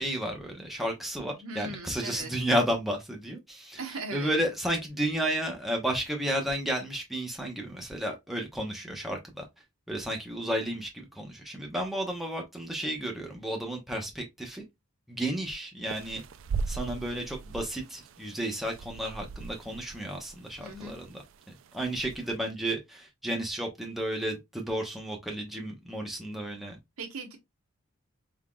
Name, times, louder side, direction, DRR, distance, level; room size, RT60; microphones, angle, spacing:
voice 1, 0.0-3.8 4.1-9.4 9.9-14.6 15.1-16.2 16.7-21.2 21.5-26.8, right 1 dB, ahead, 0.7 m, -32 dB
voice 2, 1.4-2.3 3.8-4.3 20.6-21.0 27.0-27.4, right 3 dB, 80° right, 1.0 m, -39 dB
sound 1, 15.9-22.4, right 4 dB, 65° right, 0.3 m, -39 dB
3.7 x 3.6 x 2.2 m
head